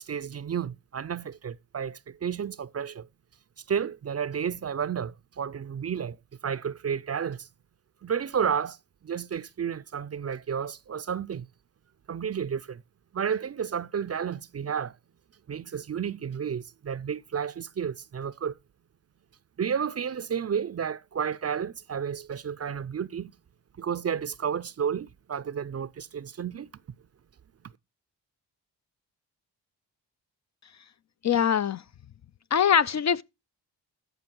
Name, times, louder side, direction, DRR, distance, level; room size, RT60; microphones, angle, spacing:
voice 1, 0.0-3.1 3.7-6.2 6.4-7.5 8.0-8.8 9.0-11.5 12.1-12.8 13.1-14.9 15.5-18.6 19.6-23.3 23.8-26.7, right 7 dB, 35° right, 0.5 m, -31 dB
voice 2, 31.2-31.8 32.5-33.2, left 8 dB, 40° left, 0.5 m, -22 dB
14.0 x 5.2 x 4.5 m
supercardioid pair, 45°, 44 cm